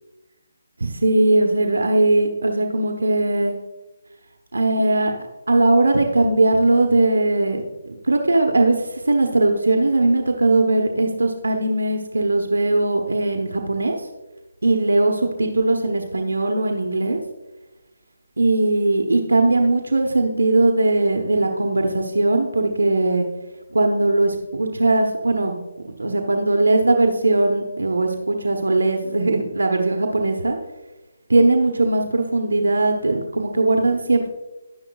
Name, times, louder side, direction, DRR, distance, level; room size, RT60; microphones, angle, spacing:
voice 1, 0.8-3.6 4.5-14.0 14.6-17.2 18.4-23.3 23.7-25.6 26.0-30.6 31.3-34.3, right 2 dB, 85° right, 3 dB, 1.0 m, -19 dB
11.0 x 9.8 x 2.3 m, 1.1 s
figure-of-eight pair, 155°, 0 cm